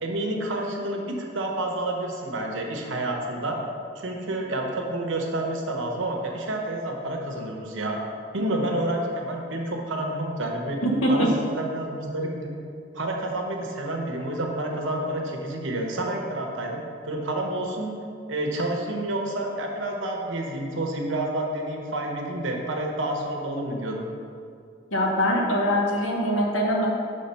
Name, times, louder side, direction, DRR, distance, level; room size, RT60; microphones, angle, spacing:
voice 1, 0.0-3.6 3.9-8.0 8.3-10.8 11.1-12.6 12.9-16.8 17.1-18.0 18.3-24.1, right 1 dB, 85° right, 1 dB, 1.0 m, -29 dB
voice 2, 10.8-11.3 24.9-26.9, equal, 85° left, -1 dB, 1.2 m, -23 dB
6.5 x 3.7 x 5.6 m, 2.3 s
head